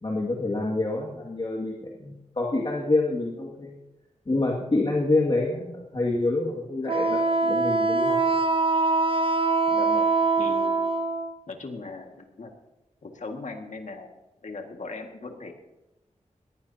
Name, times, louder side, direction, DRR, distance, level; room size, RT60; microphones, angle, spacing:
voice 1, 0.0-3.8 4.3-8.4, left 2 dB, 40° left, -3 dB, 2.2 m, -27 dB
Wind instrument woodwind instrument, 6.9-11.3, right 3 dB, 45° right, 0.8 m, -23 dB
voice 2, 9.7-10.8 11.5-12.5 13.0-14.1 14.4-15.5, left 3 dB, 70° left, 3 dB, 2.0 m, -39 dB
20.5 x 15.0 x 2.9 m, 0.98 s
wide cardioid pair, 70°, 13 cm